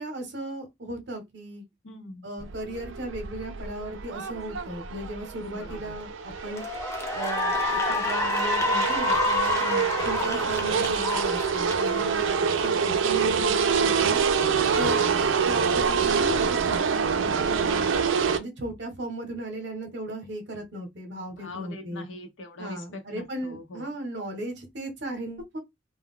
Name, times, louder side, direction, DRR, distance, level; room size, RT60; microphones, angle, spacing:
voice 1, 0.0-1.6 2.2-6.6 7.1-9.5 10.0-12.2 12.6-14.2 14.7-17.8 18.4-22.1 22.6-25.6, right 1 dB, 60° right, 0.8 m, -36 dB
voice 2, 1.8-2.3 5.5-5.9 9.6-10.1 12.3-12.8 13.1-13.5 21.3-23.9, left 1 dB, 80° left, 0.8 m, -42 dB
sound 1, 2.4-18.4, right 6 dB, 80° right, 0.4 m, -26 dB
Cheering / Applause, 5.7-6.0 6.5-13.0, left 3 dB, 15° left, 0.4 m, -29 dB
2.2 x 2.1 x 3.5 m
head